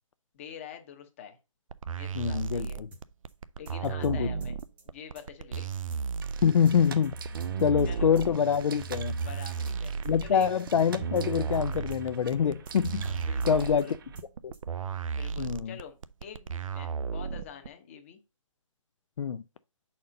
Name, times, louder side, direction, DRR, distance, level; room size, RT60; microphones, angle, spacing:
voice 1, 0.3-1.4 1.9-2.8 3.6-4.6 4.8-5.7 7.5-8.1 9.2-9.9 10.2-10.5 13.2-13.9 15.1-18.2, left 8 dB, 25° left, 0.8 m, -46 dB
sound 1, 1.7-17.7, right 6 dB, 80° right, 0.5 m, -34 dB
voice 2, 2.1-2.9 3.8-4.3 6.4-7.1 7.6-9.2 10.0-13.2 13.4-13.9 14.4-14.5 15.4-15.7 19.2-19.4, left 7 dB, 70° left, 0.4 m, -25 dB
sound 2, 2.9-3.0 3.3-3.4 3.6-4.1 4.4-4.8 5.1-5.2 5.5-6.0 6.3-6.4 6.6-7.1 7.4-7.8 8.1-8.2 8.5-8.6 8.9-9.0 9.3-9.4 9.6-10.1 10.4-10.8 11.1-11.2 11.5-12.0 12.3-12.4 12.6-13.1 13.4-13.8 14.1-14.3 14.5-14.6, right 1 dB, 5° right, 0.8 m, -52 dB
sound 3, 6.2-14.2, right 3 dB, 40° right, 0.6 m, -40 dB
5.3 x 4.3 x 5.0 m
hypercardioid pair, 165°, 17 cm